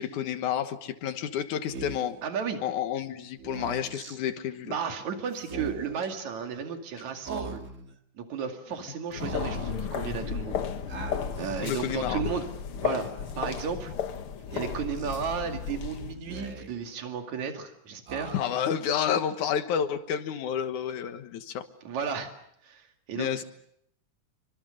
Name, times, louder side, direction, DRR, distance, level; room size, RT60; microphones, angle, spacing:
voice 1, 0.0-2.2 2.6-4.7 11.6-12.2 18.3-21.7 23.1-23.4, left 9 dB, 90° left, 9 dB, 2.8 m, -30 dB
Speech, 1.7-2.2 3.4-4.2 5.4-6.0 7.2-7.9 9.2-9.8 10.9-11.6 12.7-13.3 14.5-15.2 16.1-16.9 18.1-18.8, right 3 dB, 30° right, 1.6 m, -40 dB
voice 2, 2.2-2.6 4.7-7.6 8.2-10.6 11.4-12.5 12.8-13.1 13.4-13.9 14.5-18.3 21.9-22.3 22.6-23.4, right 6 dB, 70° right, 4 dB, 3.7 m, -33 dB
sound 1, 9.1-16.1, left 7 dB, 55° left, 1.9 m, -34 dB
27.0 x 25.5 x 6.5 m, 0.72 s
omnidirectional pair, 3.4 m